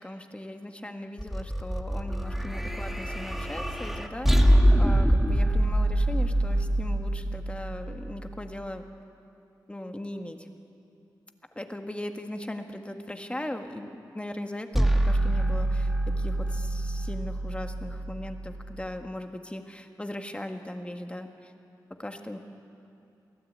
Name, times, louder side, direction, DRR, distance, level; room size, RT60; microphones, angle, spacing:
voice 1, 0.0-8.8 9.7-10.5 11.5-21.5 21.9-22.4, left 1 dB, 15° left, 5 dB, 1.7 m, -38 dB
sound 1, 1.2-8.5 14.7-18.8, right 1 dB, 5° right, 1.6 m, -25 dB
23.5 x 15.5 x 8.7 m, 2.7 s
cardioid pair, 65°, 7 cm